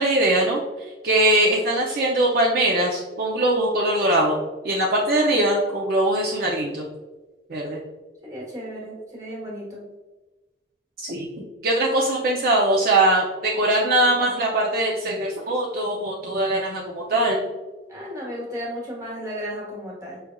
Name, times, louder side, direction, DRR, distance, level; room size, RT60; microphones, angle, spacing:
voice 1, 0.0-4.4 4.6-6.9 7.5-7.8 11.0-11.3 11.6-17.4, right 1 dB, 55° right, -2 dB, 0.5 m, -21 dB
voice 2, 8.2-9.8 17.9-20.2, equal, 20° right, -5 dB, 1.3 m, -34 dB
4.8 x 3.3 x 2.2 m, 1.2 s
head